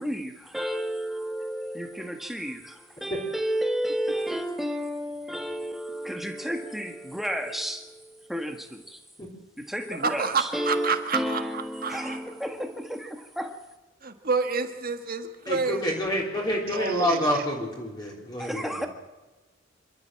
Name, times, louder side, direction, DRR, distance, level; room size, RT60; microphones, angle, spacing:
voice 1, 0.0-9.0 9.6-13.6 18.4-18.9, equal, ahead, 4 dB, 1.6 m, -32 dB
voice 2, 10.0-11.4 11.8-12.2 14.0-15.8 16.7-17.4, right 4 dB, 45° right, 7 dB, 1.6 m, -28 dB
voice 3, 15.5-18.7, equal, 20° left, -2 dB, 3.7 m, -27 dB
26.5 x 13.0 x 7.6 m, 1.2 s
head